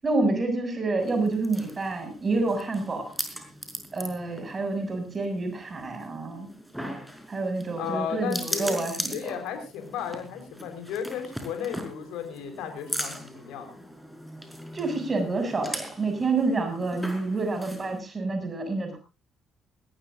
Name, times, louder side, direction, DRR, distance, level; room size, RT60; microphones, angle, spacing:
voice 1, 0.0-3.1 3.9-6.5 7.3-9.3 14.7-19.0, right 3 dB, 35° right, 6 dB, 7.0 m, -28 dB
sound 1, 1.0-18.0, equal, ahead, 5.1 m, -39 dB
voice 2, 7.8-8.8 9.1-13.8, left 7 dB, 70° left, 7 dB, 4.3 m, -34 dB
20.5 x 18.5 x 2.6 m, 0.30 s
hypercardioid pair, 50°, 0 cm